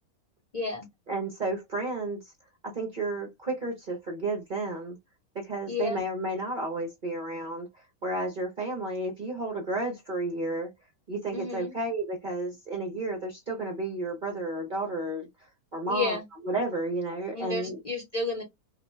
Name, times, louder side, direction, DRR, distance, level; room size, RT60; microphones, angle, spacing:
voice 1, 0.5-0.9 5.7-6.0 11.3-11.7 15.9-16.2 17.3-18.4, left 3 dB, 35° left, 0.8 m, -31 dB
voice 2, 1.1-2.3 2.6-5.0 5.3-10.7 11.1-16.2 16.4-17.8, right 2 dB, 45° right, 0.7 m, -32 dB
2.6 x 2.2 x 3.1 m
omnidirectional pair, 1.6 m